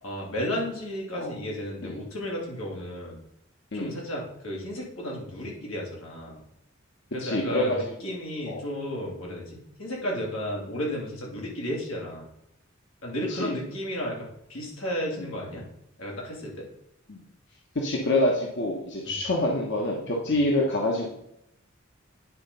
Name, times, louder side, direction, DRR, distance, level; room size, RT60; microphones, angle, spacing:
voice 1, 0.0-3.2 3.7-6.4 7.1-12.3 13.0-15.7 16.0-16.7 19.0-19.2 20.3-20.4, equal, 90° left, -2 dB, 2.7 m, -33 dB
voice 2, 7.2-7.8 8.0-8.1 8.5-8.6 13.3-13.6 15.2-15.3 17.1-17.2 17.7-21.1, left 1 dB, 60° left, -1 dB, 1.1 m, -26 dB
9.6 x 3.9 x 5.4 m, 0.81 s
head